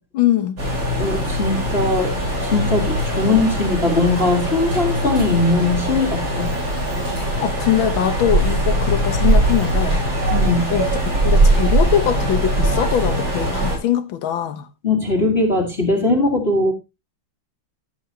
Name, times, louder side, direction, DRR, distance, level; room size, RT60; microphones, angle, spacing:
voice 1, 0.1-0.6 7.4-10.0 10.7-14.7, left 10 dB, 75° left, 1.8 m, -22 dB
sound 1, 0.6-13.8, right 1 dB, 60° right, 7.3 m, -20 dB
voice 2, 1.0-2.2 2.4-6.5 10.3-10.7 14.8-16.7, left 2 dB, 30° left, 2.0 m, -20 dB
13.0 x 7.9 x 2.8 m
omnidirectional pair, 2.2 m